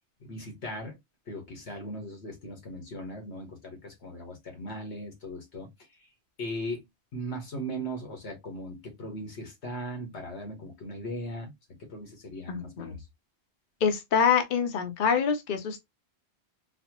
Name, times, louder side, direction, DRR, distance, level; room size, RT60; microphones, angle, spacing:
voice 1, 0.2-1.0 1.3-5.7 6.4-6.9 7.1-11.5 11.8-13.0, equal, 80° left, 1.5 m, -38 dB
voice 2, 12.5-12.9 13.8-15.8, left 6 dB, 55° left, 0.8 m, -25 dB
4.1 x 2.0 x 2.8 m
omnidirectional pair, 1.1 m